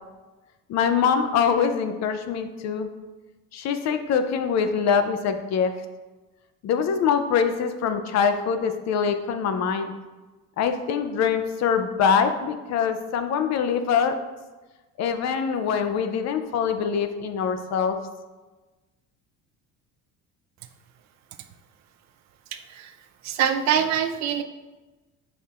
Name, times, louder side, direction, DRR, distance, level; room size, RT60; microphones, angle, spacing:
voice 1, 0.7-2.9 3.5-5.7 6.6-9.9 10.6-14.2 15.0-18.0, left 6 dB, 50° left, 8 dB, 0.5 m, -24 dB
voice 2, 22.5-22.9 23.2-24.4, right 8 dB, 50° right, 8 dB, 0.5 m, -24 dB
6.9 x 5.6 x 2.4 m, 1.2 s
cardioid pair, 140°, 36 cm